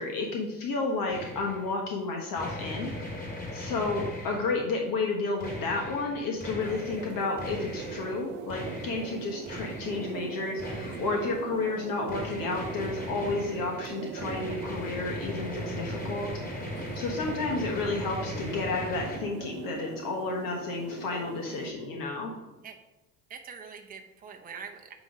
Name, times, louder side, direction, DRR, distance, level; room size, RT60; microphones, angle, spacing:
voice 1, 0.0-2.9 3.5-16.7 16.9-22.3, left 3 dB, 50° left, 1 dB, 1.2 m, -31 dB
sound 1, 1.1-1.7 2.4-4.7 5.4-8.2 8.5-10.3 10.6-11.4 12.1-19.2, left 1 dB, 20° left, 2.2 m, -38 dB
sound 2, 6.6-21.7, right 9 dB, 70° right, 0.6 m, -41 dB
voice 2, 16.8-17.1 22.6-22.8 23.3-24.9, right 6 dB, 20° right, 3 dB, 0.8 m, -44 dB
8.8 x 3.1 x 5.0 m, 1.0 s
hypercardioid pair, 65°, 44 cm